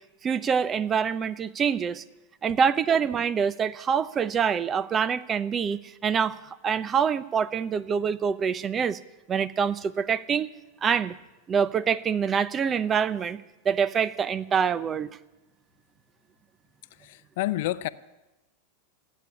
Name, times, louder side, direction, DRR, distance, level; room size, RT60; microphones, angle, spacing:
voice 1, 0.2-2.0 2.4-6.4 6.6-9.0 9.3-10.5 10.8-11.1 11.5-15.1, right 7 dB, 25° right, 17 dB, 0.6 m, -25 dB
voice 2, 17.0-17.9, left 16 dB, 65° left, 16 dB, 0.6 m, -29 dB
15.0 x 8.5 x 9.8 m, 1.0 s
hypercardioid pair, 105°, 0 cm